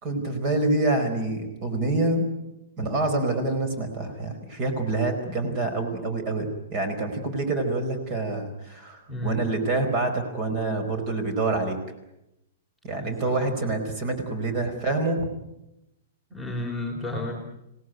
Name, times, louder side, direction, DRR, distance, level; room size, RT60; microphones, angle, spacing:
voice 1, 0.0-2.3 2.8-11.8 12.8-15.3, right 2 dB, 30° right, 7 dB, 4.7 m, -26 dB
voice 2, 9.1-9.4 12.8-13.5 16.3-17.4, left 1 dB, 5° right, 0 dB, 3.4 m, -33 dB
26.5 x 18.5 x 9.4 m, 0.90 s
hypercardioid pair, 170°, 0 cm